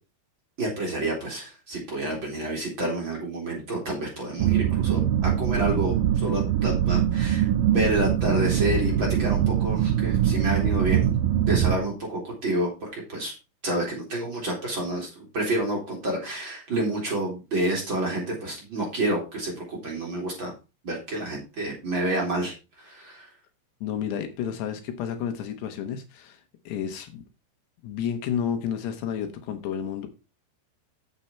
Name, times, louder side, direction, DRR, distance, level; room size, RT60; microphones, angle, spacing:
voice 1, 0.6-11.1 11.5-13.3 13.6-20.5 20.8-23.3, right 1 dB, 30° right, -2 dB, 3.2 m, -29 dB
sound 1, 4.4-11.8, right 11 dB, 75° right, 2.2 m, -23 dB
Bowed string instrument, 8.6-11.7, left 4 dB, 60° left, 2.3 m, -36 dB
voice 2, 23.8-27.2 27.8-30.1, left 8 dB, 75° left, 7 dB, 3.2 m, -31 dB
9.0 x 7.9 x 4.2 m, 0.29 s
omnidirectional pair, 5.0 m